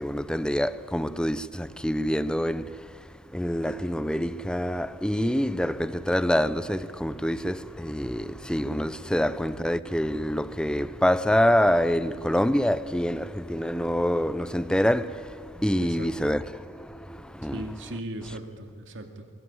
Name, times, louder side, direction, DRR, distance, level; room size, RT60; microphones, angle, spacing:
voice 1, 0.0-17.7, equal, 5° left, 0.6 m, -26 dB
voice 2, 15.8-16.3 17.5-19.3, right 1 dB, 65° right, 2.3 m, -38 dB
21.5 x 19.5 x 9.9 m
head